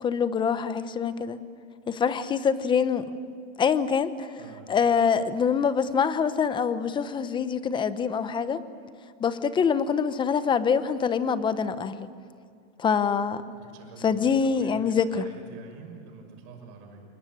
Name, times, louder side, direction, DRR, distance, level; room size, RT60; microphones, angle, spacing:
voice 1, 0.0-1.4 1.9-3.1 3.6-4.4 4.7-8.6 9.2-12.1 12.8-13.4 14.0-15.2, left 6 dB, 10° left, 13 dB, 0.8 m, -25 dB
voice 2, 4.4-4.7 13.5-17.0, right 4 dB, 45° right, 3 dB, 6.3 m, -46 dB
27.5 x 21.5 x 9.8 m, 2.2 s
supercardioid pair, 145°, 38 cm